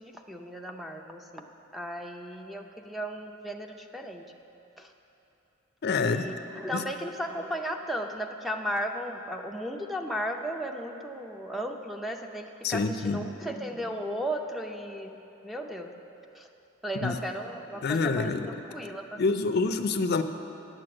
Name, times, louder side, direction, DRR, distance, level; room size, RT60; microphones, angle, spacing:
voice 1, 0.0-4.2 4.8-4.9 6.0-15.2 15.4-15.9 16.3-16.5 16.8-19.2 19.5-19.7, equal, ahead, 3 dB, 0.5 m, -35 dB
voice 2, 5.8-6.3 6.7-6.8 12.6-13.3 17.0-17.2 17.8-18.5 19.2-20.2, left 4 dB, 55° left, 9 dB, 0.5 m, -27 dB
9.2 x 7.7 x 7.7 m, 2.9 s
head